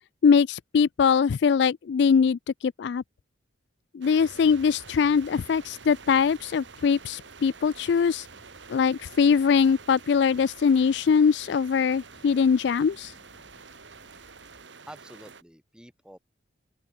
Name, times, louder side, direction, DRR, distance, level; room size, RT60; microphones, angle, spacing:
voice 1, 0.2-3.0 3.9-8.3 8.7-13.1, left 6 dB, 60° left, 0.3 m, -22 dB
sound 1, 4.0-15.4, right 5 dB, 65° right, 1.8 m, -48 dB
sound 2, 4.2-14.7, left 1 dB, 40° left, 5.4 m, -57 dB
voice 2, 14.9-16.2, equal, 5° right, 6.8 m, -48 dB
open air
head